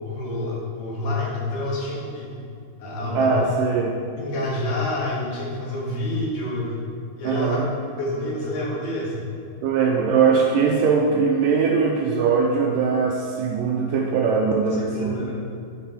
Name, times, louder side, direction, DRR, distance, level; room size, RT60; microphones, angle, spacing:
voice 1, 0.0-2.3 2.8-3.4 4.2-6.8 7.2-7.6 7.9-9.3 14.8-15.3, left 1 dB, 70° left, -4 dB, 3.2 m, -28 dB
voice 2, 3.2-4.0 7.2-7.7 9.6-15.3, right 5 dB, 80° right, 1 dB, 2.0 m, -21 dB
9.1 x 6.2 x 4.2 m, 2.3 s
omnidirectional pair, 4.3 m